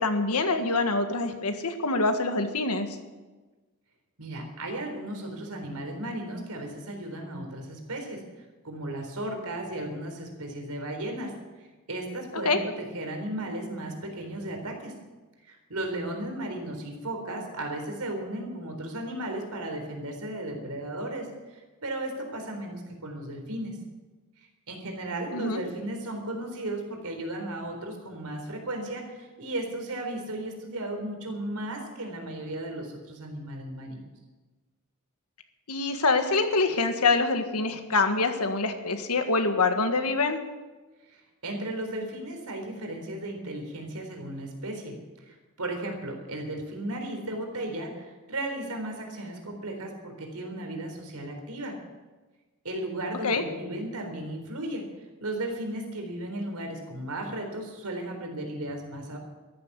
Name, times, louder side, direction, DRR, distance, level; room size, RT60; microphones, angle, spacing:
voice 1, 0.0-2.9 12.4-12.6 25.3-25.6 35.7-40.4 53.2-53.4, left 3 dB, 80° left, 7 dB, 1.7 m, -25 dB
voice 2, 4.2-8.2 8.6-15.0 15.4-23.8 24.7-34.0 41.1-45.0 45.3-51.8 52.6-54.9 55.2-59.2, right 1 dB, 85° right, 3 dB, 4.0 m, -35 dB
13.5 x 12.0 x 8.2 m, 1.2 s
head